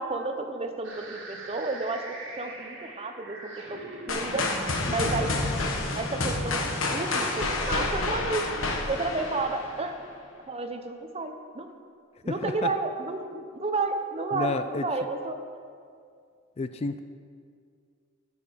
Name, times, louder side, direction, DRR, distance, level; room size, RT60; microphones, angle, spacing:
voice 1, 0.0-4.4 4.9-5.3 5.9-8.5 8.9-9.9 10.5-11.7 12.2-15.4, right 3 dB, 30° right, 6 dB, 0.8 m, -31 dB
sound 1, 0.8-8.7, right 1 dB, 70° right, 1.9 m, -42 dB
sound 2, 4.1-10.0, left 2 dB, 80° left, 1.3 m, -29 dB
voice 2, 12.3-12.7 14.3-14.9 16.6-17.0, left 3 dB, 30° left, 10 dB, 0.3 m, -31 dB
14.0 x 7.1 x 5.1 m, 2.2 s
head